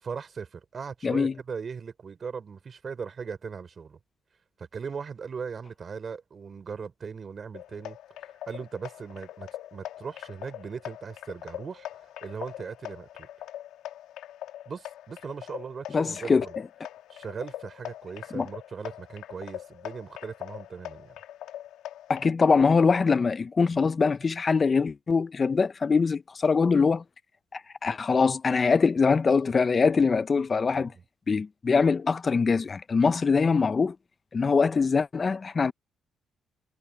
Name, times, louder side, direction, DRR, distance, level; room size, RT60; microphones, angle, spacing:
voice 1, 0.0-4.0 4.6-8.0 8.5-11.9 12.2-13.3 14.7-16.6 17.1-21.1 30.7-30.9, right 6 dB, 45° right, 4.3 m, -39 dB
voice 2, 1.0-1.3 15.9-16.4 18.3-18.5 22.1-27.0 27.5-30.9 31.3-34.0 34.3-35.7, left 5 dB, 35° left, 0.5 m, -23 dB
sound 1, 7.5-22.3, left 12 dB, 90° left, 1.9 m, -42 dB
cardioid pair, 90°, 0 cm